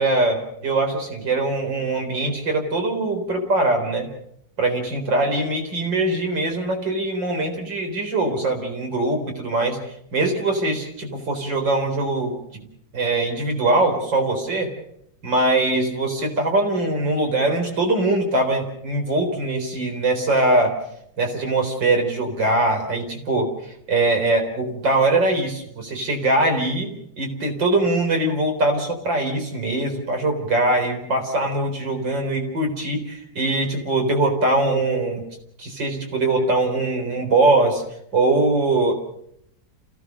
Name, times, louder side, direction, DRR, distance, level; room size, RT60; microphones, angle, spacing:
voice 1, 0.0-4.1 4.6-9.8 10.1-12.6 12.9-14.7 15.2-20.7 21.2-26.9 27.2-35.2 35.6-37.8 38.1-38.9, right 2 dB, 80° right, 3 dB, 4.8 m, -22 dB
28.5 x 17.0 x 6.7 m, 0.73 s
omnidirectional pair, 2.0 m